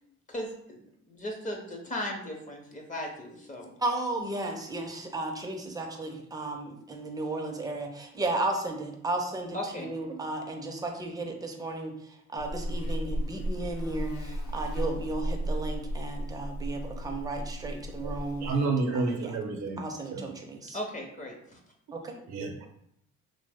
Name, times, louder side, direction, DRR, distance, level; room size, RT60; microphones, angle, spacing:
voice 1, 0.3-3.8 9.5-10.0 20.7-21.6, left 1 dB, 25° left, 1 dB, 0.7 m, -37 dB
voice 2, 3.8-19.4 19.8-20.8 21.9-22.1, right 2 dB, 10° right, 2 dB, 0.5 m, -34 dB
Buzz, 12.4-18.5, equal, 70° left, 0.5 m, -34 dB
voice 3, 18.4-19.8 20.1-20.3 22.3-22.7, right 3 dB, 65° right, 4 dB, 0.6 m, -29 dB
3.0 x 2.0 x 3.4 m, 0.73 s
cardioid pair, 90°, 30 cm